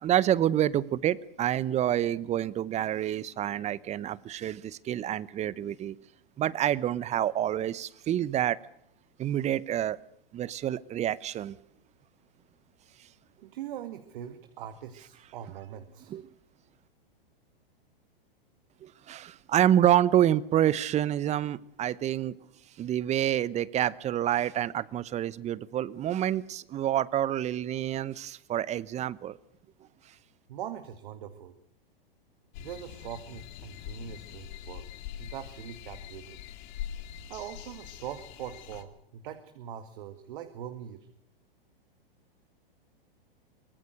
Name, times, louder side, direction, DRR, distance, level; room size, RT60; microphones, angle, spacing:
voice 1, 0.0-6.0 6.4-8.6 9.2-10.0 10.3-11.5 16.1-16.3 18.8-22.3 22.8-29.4, right 11 dB, 25° right, 21 dB, 0.9 m, -27 dB
voice 2, 13.4-16.2 30.5-31.6 32.6-34.9 35.2-36.4 37.3-41.1, right 10 dB, 60° right, 9 dB, 2.1 m, -42 dB
sound 1, 32.5-38.8, left 11 dB, 50° left, 2.6 m, -43 dB
24.0 x 19.5 x 6.4 m, 0.73 s
hypercardioid pair, 115°, 29 cm